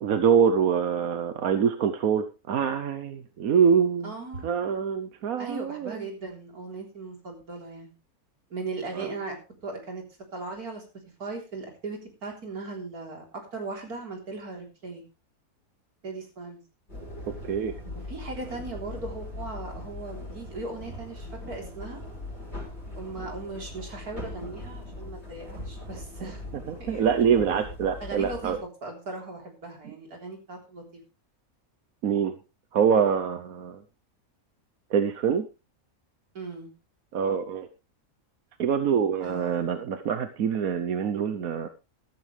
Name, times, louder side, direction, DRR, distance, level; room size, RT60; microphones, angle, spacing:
voice 1, 0.0-4.1 4.4-6.0 8.9-9.1 17.4-17.8 26.2-26.3 26.7-28.6 32.0-32.4 32.7-33.8 34.9-35.5 37.1-37.7 38.6-41.7, right 7 dB, 70° right, 9 dB, 1.3 m, -25 dB
voice 2, 4.0-4.5 5.4-7.9 8.5-9.4 9.6-10.0 10.3-10.8 11.2-15.0 16.0-16.6 18.1-22.0 22.9-26.4 26.8-27.4 28.0-28.6 28.8-31.0 36.3-36.7 39.2-39.9, right 3 dB, 90° right, 2 dB, 4.2 m, -38 dB
sound 1, 16.9-28.6, left 1 dB, 45° left, 6.8 m, -40 dB
14.0 x 13.5 x 3.3 m, 0.28 s
omnidirectional pair, 1.5 m